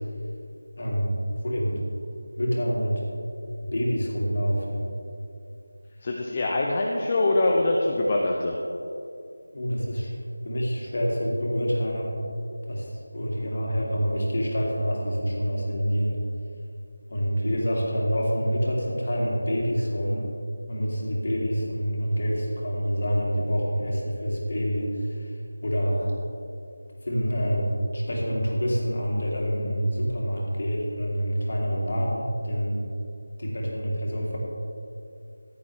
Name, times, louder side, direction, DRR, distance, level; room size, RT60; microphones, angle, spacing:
voice 1, 0.8-1.2 1.4-1.8 2.4-3.0 3.7-4.8 9.5-10.1 10.4-12.1 12.7-16.2 17.1-20.3 20.7-25.3 25.6-26.1 27.0-32.8 33.4-34.4, equal, 45° left, -3 dB, 2.6 m, -27 dB
voice 2, 6.0-8.6, left 2 dB, 25° left, -1 dB, 0.7 m, -23 dB
14.5 x 10.5 x 3.4 m, 2.6 s
figure-of-eight pair, 165°, 0 cm